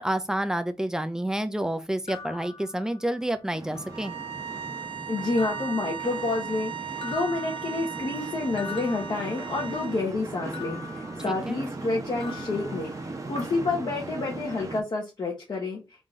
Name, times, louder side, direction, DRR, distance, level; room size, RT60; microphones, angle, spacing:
voice 1, 0.0-4.2 11.3-11.6, right 1 dB, 5° right, 0.6 m, -29 dB
sound 1, 2.1-3.3 3.7-4.5 5.4-6.6 7.0-9.9 10.5-11.9 12.2-13.5, left 5 dB, 85° left, 1.0 m, -45 dB
sound 2, 3.5-14.8, right 3 dB, 35° right, 1.0 m, -38 dB
sound 3, 3.9-10.0, right 8 dB, 65° right, 0.4 m, -37 dB
voice 2, 5.1-6.7 7.0-15.8, left 3 dB, 50° left, 1.3 m, -29 dB
3.9 x 2.9 x 3.7 m
cardioid pair, 90°, 10 cm